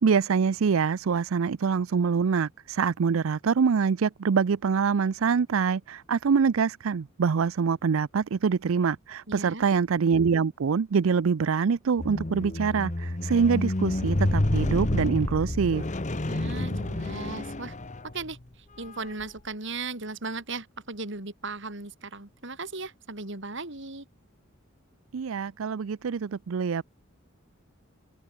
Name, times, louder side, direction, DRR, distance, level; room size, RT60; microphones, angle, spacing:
voice 1, 0.0-15.8 25.1-26.8, right 6 dB, 75° right, 0.5 m, -25 dB
voice 2, 9.3-9.7 16.3-17.8 18.1-24.1, right 3 dB, 60° right, 4.5 m, -37 dB
Squeak, 12.0-18.3 19.1-19.2, left 1 dB, 35° left, 1.2 m, -29 dB
open air
head